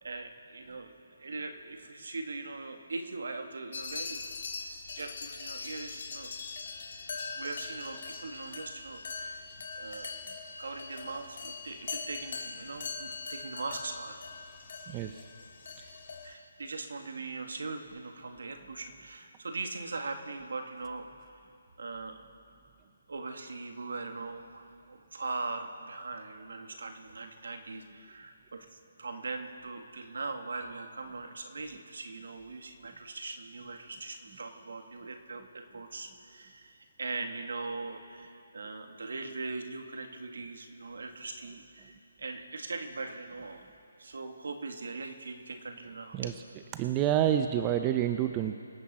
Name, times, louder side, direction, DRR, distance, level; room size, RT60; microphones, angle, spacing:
voice 1, 0.0-4.3 5.0-6.3 7.4-9.4 9.8-10.2 10.6-14.2 16.2-21.3 21.8-22.2 23.1-43.6 44.0-46.3, right 3 dB, 70° right, 5 dB, 1.8 m, -40 dB
sound 1, 3.7-16.3, left 4 dB, 55° left, 2.0 m, -41 dB
voice 2, 14.9-15.2 15.8-15.9 46.1-46.3 46.7-48.6, right 11 dB, 20° right, 7 dB, 0.5 m, -28 dB
25.0 x 8.6 x 4.2 m, 2.4 s
hypercardioid pair, 155°, 0 cm